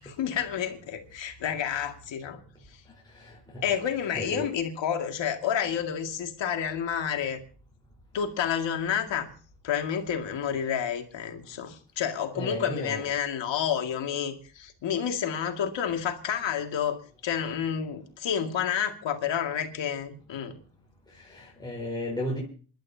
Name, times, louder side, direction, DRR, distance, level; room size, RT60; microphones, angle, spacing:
voice 1, 0.0-2.4 3.6-7.4 8.1-9.3 9.6-20.6, left 8 dB, 75° left, 2.4 m, -30 dB
voice 2, 3.1-3.6 4.1-4.5 12.3-13.1 21.2-22.4, left 1 dB, 10° left, 4.4 m, -34 dB
28.0 x 12.0 x 2.9 m
cardioid pair, 105°, 45 cm